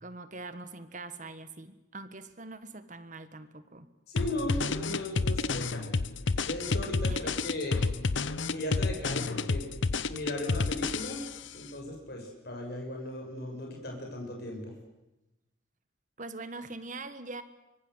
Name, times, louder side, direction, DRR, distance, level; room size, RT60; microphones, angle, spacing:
voice 1, 0.0-3.9 7.1-7.3 16.2-17.4, right 3 dB, 40° right, 11 dB, 1.7 m, -43 dB
voice 2, 4.1-5.9 6.4-7.9 8.5-9.7 10.1-11.3 11.5-14.7, left 1 dB, 55° left, 1 dB, 6.7 m, -37 dB
sound 1, 4.2-11.5, left 3 dB, 70° left, 0.9 m, -30 dB
24.5 x 24.0 x 8.2 m, 0.98 s
head